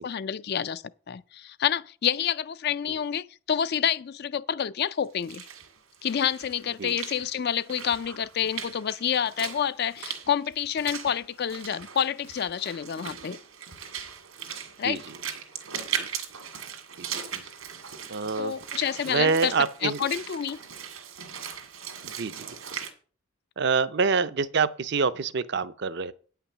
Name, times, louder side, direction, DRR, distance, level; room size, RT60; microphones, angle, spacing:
voice 1, 0.0-5.5 6.0-13.4 14.8-15.0 18.4-19.5 19.8-20.6, left 8 dB, 50° left, 0.4 m, -28 dB
Walk footsteps / Splash splatter, 5.1-22.9, right 8 dB, 80° right, 1.9 m, -39 dB
voice 2, 18.1-18.5 19.1-20.1 22.0-22.5 23.6-26.1, right 5 dB, 50° right, 0.5 m, -26 dB
9.2 x 5.8 x 7.1 m
head